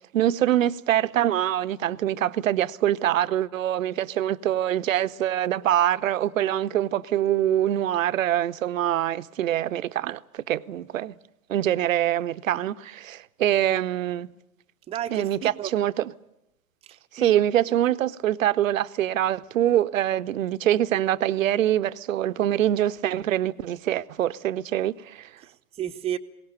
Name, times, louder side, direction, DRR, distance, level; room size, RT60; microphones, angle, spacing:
voice 1, 0.1-11.1 11.5-14.3 15.1-16.1 17.1-25.3, right 12 dB, 65° right, 0.7 m, -24 dB
voice 2, 14.9-15.7 16.8-17.4 25.4-26.2, right 10 dB, 15° right, 0.7 m, -33 dB
21.0 x 18.5 x 8.7 m
figure-of-eight pair, 100°, 42 cm